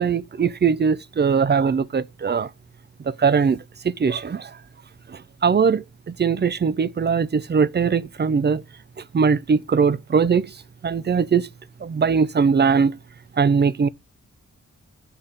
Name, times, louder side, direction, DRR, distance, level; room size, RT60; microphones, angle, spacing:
voice 1, 0.0-2.5 3.1-3.6 3.8-4.5 5.4-5.8 6.2-8.6 9.1-10.5 10.8-11.5 11.8-13.0 13.4-13.9, right 6 dB, 35° right, 0.4 m, -20 dB
6.9 x 5.1 x 5.4 m
wide cardioid pair, 125°, 30 cm